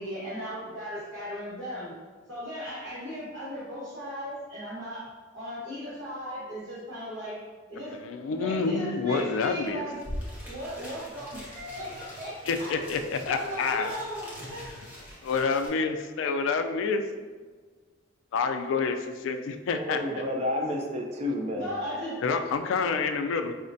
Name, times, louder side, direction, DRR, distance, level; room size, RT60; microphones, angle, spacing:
voice 1, 0.0-1.9 2.3-5.1 5.3-7.4 7.7-8.0 8.3-10.0 10.4-12.9 13.2-14.6 21.5-22.1, equal, 75° right, -12 dB, 1.4 m, -37 dB
voice 2, 7.9-9.9 12.5-13.9 15.2-17.0 18.3-20.2 22.2-23.5, left 4 dB, 90° left, 7 dB, 0.3 m, -28 dB
sound 1, 9.7-9.8 9.9-15.7, equal, 10° right, 0.8 m, -42 dB
voice 3, 19.7-21.7, left 1 dB, 35° right, 1 dB, 0.4 m, -30 dB
4.7 x 2.1 x 2.6 m, 1.4 s
head